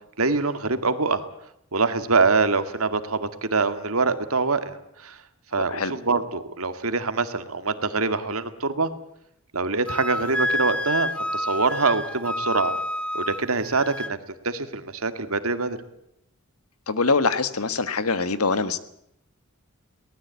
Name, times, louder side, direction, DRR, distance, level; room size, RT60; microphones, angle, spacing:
voice 1, 0.2-1.2 1.7-5.2 5.5-8.9 9.5-12.8 13.1-14.2 14.4-15.8, right 4 dB, 75° right, 10 dB, 2.0 m, -24 dB
Wind instrument woodwind instrument, 9.9-14.1, left 1 dB, 5° left, 0.8 m, -28 dB
voice 2, 16.9-18.8, left 4 dB, 85° left, 13 dB, 1.6 m, -23 dB
23.0 x 19.0 x 8.3 m, 0.76 s
head